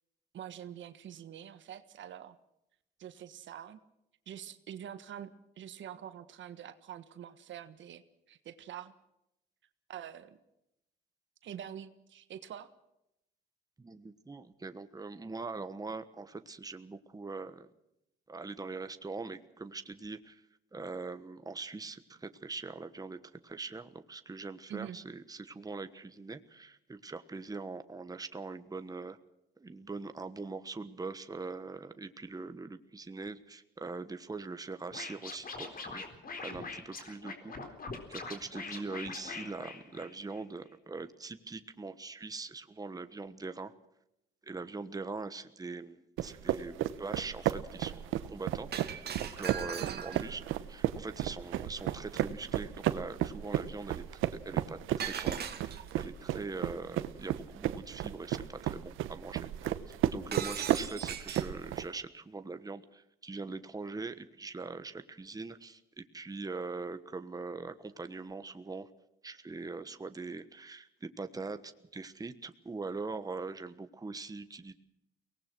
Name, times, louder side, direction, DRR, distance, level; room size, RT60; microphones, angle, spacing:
voice 1, 0.3-2.4 3.0-3.8 4.3-8.0 8.3-8.9 9.9-10.4 11.4-12.7 24.7-25.0 49.8-50.0, right 10 dB, 70° right, 11 dB, 1.5 m, -45 dB
voice 2, 13.8-17.7 18.3-20.4 20.7-23.2 23.4-29.2 29.6-36.0 36.4-37.8 38.1-43.7 44.4-50.4 50.7-68.9 69.2-74.7, right 3 dB, 20° right, 10 dB, 1.3 m, -42 dB
Scratching (performance technique), 34.9-40.4, left 4 dB, 45° left, 4.0 m, -43 dB
sound 1, 46.2-61.8, right 12 dB, 90° right, 1.1 m, -34 dB
Shatter, 48.7-50.4 55.0-56.0 60.3-61.6, right 8 dB, 55° right, 2.2 m, -39 dB
23.5 x 19.0 x 6.2 m, 0.83 s
cardioid pair, 90°, 20 cm